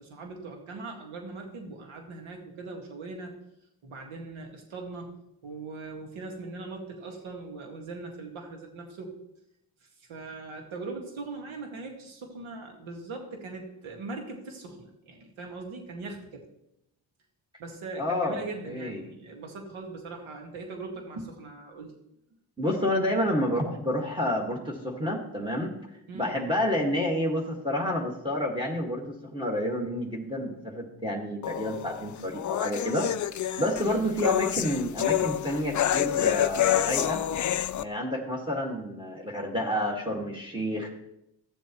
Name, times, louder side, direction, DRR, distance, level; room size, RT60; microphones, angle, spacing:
voice 1, 0.0-3.3 3.8-5.2 5.4-9.2 10.0-16.4 17.6-21.9 26.1-26.3 33.8-34.1, right 3 dB, 75° right, 2 dB, 2.0 m, -40 dB
voice 2, 18.0-19.1 22.6-25.7 26.1-33.1 33.6-37.2 37.8-40.9, left 1 dB, 10° right, -1 dB, 1.8 m, -29 dB
sound 1, 31.4-37.8, left 11 dB, 40° left, 0.4 m, -28 dB
13.0 x 7.3 x 3.0 m, 0.82 s
supercardioid pair, 55°, 48 cm